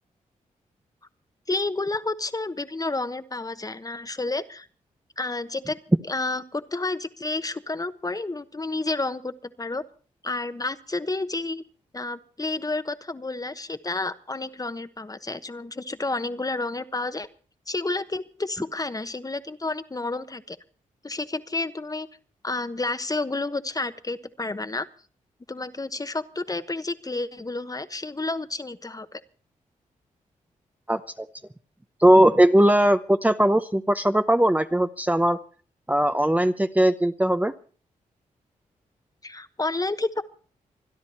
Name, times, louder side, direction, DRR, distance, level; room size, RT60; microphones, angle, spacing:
voice 1, 1.5-4.7 5.2-5.8 6.1-9.8 10.2-11.6 11.9-17.3 17.7-20.6 21.0-22.1 22.4-24.9 25.5-29.2 39.2-40.2, left 2 dB, 25° left, 11 dB, 1.2 m, -30 dB
voice 2, 30.9-31.3 32.0-35.4 35.9-37.5, right 1 dB, 10° right, 9 dB, 0.8 m, -19 dB
26.0 x 10.5 x 4.4 m, 0.41 s
cardioid pair, 50°, 14 cm